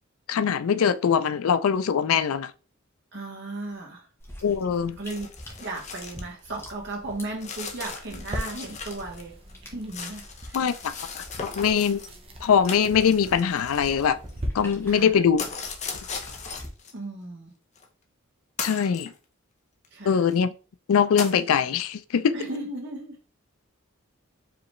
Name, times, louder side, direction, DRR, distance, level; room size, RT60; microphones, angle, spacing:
voice 1, 0.3-2.5 4.4-5.0 10.5-11.2 11.5-12.0 12.4-14.2 14.5-15.4 18.6-19.1 20.0-20.5 20.9-22.3, left 7 dB, 80° left, 0.4 m, -22 dB
voice 2, 3.1-4.1 5.0-5.3 5.6-9.3 9.6-10.7 14.9-15.2 16.9-17.5 19.9-20.3 22.3-23.2, right 2 dB, 55° right, 1.6 m, -36 dB
sound 1, 4.2-16.7, equal, 10° left, 1.1 m, -47 dB
sound 2, 5.0-6.3 6.6-6.7 7.4-9.2 9.5-12.1 12.6-14.4 15.4-16.9 17.8-17.9 18.6-19.1 19.8-19.9 20.3-20.4 21.2-21.4, left 5 dB, 35° left, 0.6 m, -37 dB
sound 3, 8.1-14.5, equal, 25° right, 0.7 m, -40 dB
4.8 x 3.1 x 3.0 m
head